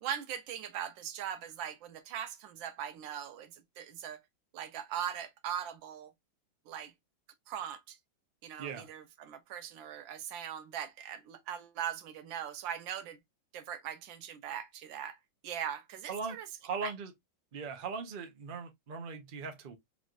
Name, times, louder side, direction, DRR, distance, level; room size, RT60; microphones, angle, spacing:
voice 1, 0.0-3.5 3.8-4.2 4.5-6.1 6.7-6.9 7.5-8.0 8.4-13.2 13.5-15.2 15.4-16.4 16.8-16.9, right 9 dB, 85° right, 1.5 m, -40 dB
voice 2, 8.6-8.9 16.1-16.4 16.6-17.1 17.5-19.8, right 5 dB, 65° right, 0.5 m, -39 dB
5.0 x 3.1 x 2.4 m
omnidirectional pair, 2.1 m